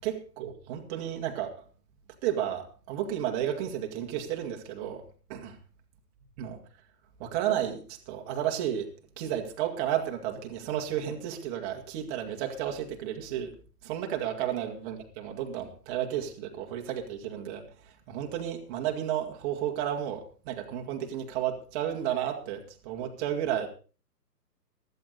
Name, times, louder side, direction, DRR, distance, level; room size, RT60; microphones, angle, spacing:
voice 1, 0.0-1.5 2.2-5.0 5.3-5.5 6.4-6.6 7.2-8.9 9.2-13.6 13.8-17.7 18.1-23.7, right 10 dB, 20° right, 3 dB, 1.9 m, -32 dB
15.5 x 13.5 x 4.0 m, 0.38 s
figure-of-eight pair, 130°, 49 cm